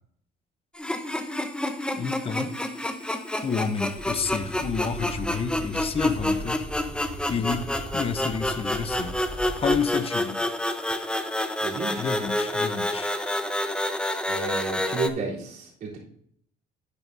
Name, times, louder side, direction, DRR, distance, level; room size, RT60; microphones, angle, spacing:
sound 1, 0.7-15.1, left 1 dB, 5° left, 0.9 m, -28 dB
voice 1, 2.0-2.5 3.4-6.6 7.3-9.2 9.6-10.4 12.0-13.1, left 6 dB, 35° left, 0.8 m, -30 dB
sound 2, 3.9-9.8, right 2 dB, 25° right, 2.7 m, -39 dB
voice 2, 11.6-12.1 14.2-16.0, right 3 dB, 60° right, 3.6 m, -31 dB
11.0 x 9.0 x 2.7 m
cardioid pair, 110°, 17 cm